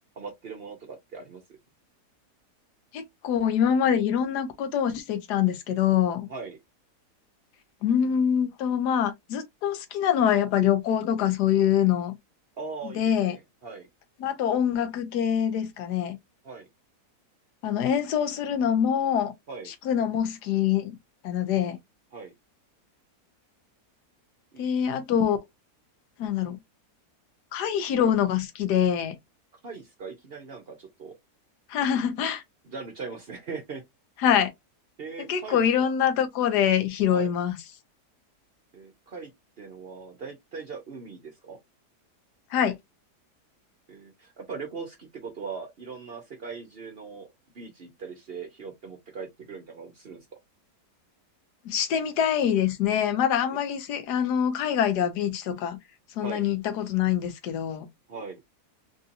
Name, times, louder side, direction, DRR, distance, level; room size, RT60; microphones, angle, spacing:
voice 1, 0.2-1.4 6.3-6.6 12.6-13.9 16.4-16.7 17.8-17.9 19.5-19.7 22.1-22.3 24.5-24.6 29.6-31.2 32.6-33.8 35.0-35.6 37.1-37.3 38.7-39.3 39.6-41.6 43.9-47.3 47.5-50.3 56.2-56.4 58.1-58.4, right 5 dB, 50° right, 0.7 m, -40 dB
voice 2, 2.9-6.3 7.8-12.2 13.0-13.4 14.2-16.2 17.6-19.3 19.8-21.0 21.2-21.8 24.6-25.4 26.2-26.6 27.5-29.2 31.7-32.4 34.2-34.5 35.2-37.6 42.5-42.8 51.6-55.8 56.2-57.9, left 9 dB, 85° left, 1.3 m, -25 dB
3.6 x 2.7 x 2.5 m
omnidirectional pair, 1.7 m